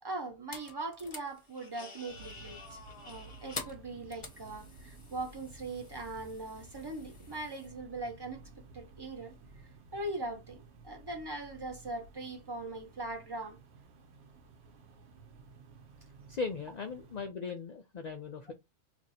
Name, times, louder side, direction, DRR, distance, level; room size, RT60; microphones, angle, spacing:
voice 1, 0.0-8.4 8.7-9.3 9.9-13.6 18.5-18.6, right 2 dB, 30° right, 0.5 m, -40 dB
sound 1, 0.5-7.7, left 3 dB, 30° left, 0.7 m, -48 dB
sound 2, 2.1-17.2, right 3 dB, 65° right, 1.0 m, -54 dB
voice 2, 16.3-18.5, left 4 dB, 65° left, 0.4 m, -38 dB
3.0 x 2.6 x 4.1 m
omnidirectional pair, 1.3 m